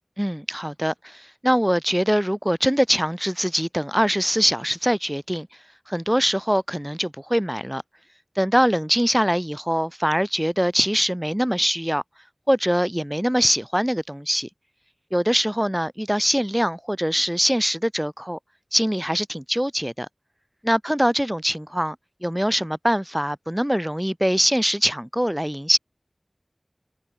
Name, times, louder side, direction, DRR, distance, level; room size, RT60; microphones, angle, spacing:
voice 1, 0.2-5.5 5.9-7.8 8.4-12.0 12.5-14.5 15.1-18.4 18.7-20.1 20.6-21.9 22.2-25.8, equal, 10° right, 1.4 m, -23 dB
wide cardioid pair, 50°, 0 cm